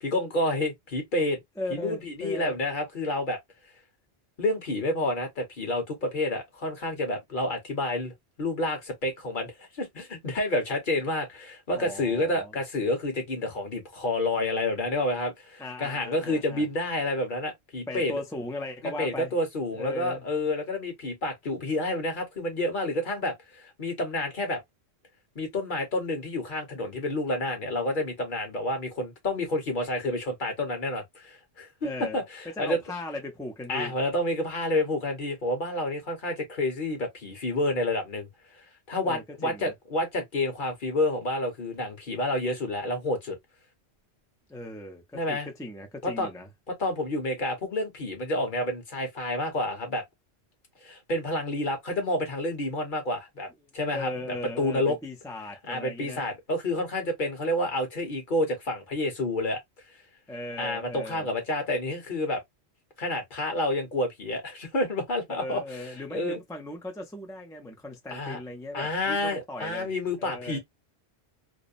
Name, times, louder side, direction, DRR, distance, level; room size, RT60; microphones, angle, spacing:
voice 1, 0.0-1.4 1.7-3.4 4.4-8.1 8.4-18.2 19.0-24.6 25.3-32.8 33.7-38.3 38.9-43.4 45.1-45.5 46.0-46.3 46.7-50.0 50.8-53.5 53.7-55.0 55.7-59.6 60.6-62.4 63.0-66.4 68.1-68.4 68.7-70.6, left 1 dB, 50° left, 1.1 m, -29 dB
voice 2, 1.6-2.6 11.8-12.5 15.6-16.7 17.9-19.3 19.7-20.2 31.8-32.2 32.6-33.9 39.0-39.7 44.5-46.5 53.9-56.2 60.3-61.3 65.4-69.9 70.2-70.6, left 1 dB, 5° left, 0.4 m, -37 dB
2.7 x 2.0 x 2.5 m
omnidirectional pair, 1.1 m